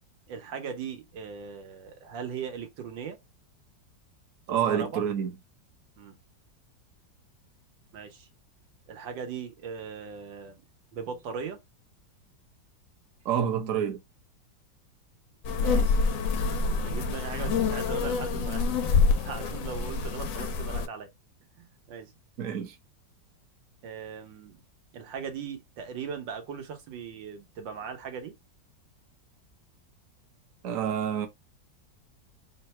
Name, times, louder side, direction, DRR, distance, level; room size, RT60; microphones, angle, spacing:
voice 1, 0.3-3.2 4.5-5.0 6.0-6.2 7.9-8.3 8.9-10.6 10.9-11.6 15.5-16.0 16.6-21.1 21.6-22.1 23.8-24.5 24.9-28.3, right 6 dB, 80° right, 1.6 m, -39 dB
voice 2, 4.5-5.3 13.2-14.0 22.4-22.7 30.6-31.3, right 8 dB, 55° right, 1.1 m, -28 dB
sound 1, 15.4-20.9, left 4 dB, 70° left, 0.8 m, -26 dB
3.7 x 2.2 x 4.2 m
omnidirectional pair, 2.0 m